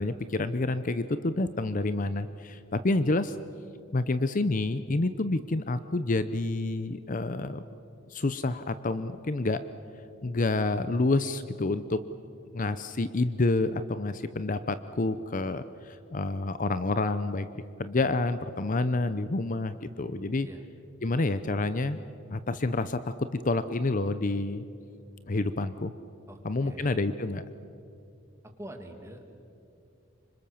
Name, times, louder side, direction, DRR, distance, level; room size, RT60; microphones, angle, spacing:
voice 1, 0.0-3.4 3.9-7.6 8.1-9.6 10.2-12.0 12.5-17.5 17.8-20.5 21.0-22.0 22.3-24.6 25.3-25.9 26.4-27.4, left 2 dB, 40° left, 12 dB, 0.7 m, -28 dB
voice 2, 26.3-27.0 28.4-29.3, right 1 dB, 15° right, 4 dB, 2.3 m, -45 dB
26.0 x 25.5 x 7.1 m, 2.5 s
head